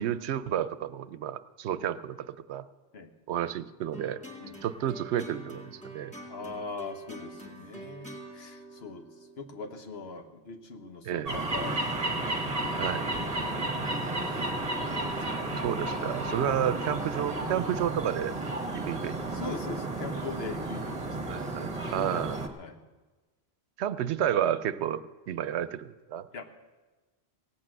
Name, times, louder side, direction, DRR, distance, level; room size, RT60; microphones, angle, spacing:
voice 1, 0.0-2.6 3.3-4.2 4.6-6.1 11.0-11.4 12.8-13.1 15.6-18.3 18.7-19.5 21.3-22.5 23.8-26.3, right 10 dB, 90° right, 15 dB, 0.9 m, -31 dB
sound 1, 3.9-10.4, right 1 dB, 5° left, 1.7 m, -46 dB
voice 2, 6.3-9.1 9.4-12.2 13.1-13.8 14.2-14.5 15.0-15.6 16.2-17.0 17.7-17.9 19.3-21.4 22.0-22.3 22.6-22.8 24.0-24.1 26.3-26.5, left 3 dB, 70° left, 7 dB, 1.3 m, -42 dB
sound 2, 11.3-22.5, right 2 dB, 35° right, 1.2 m, -32 dB
16.5 x 8.3 x 7.6 m, 1.2 s
omnidirectional pair, 1.1 m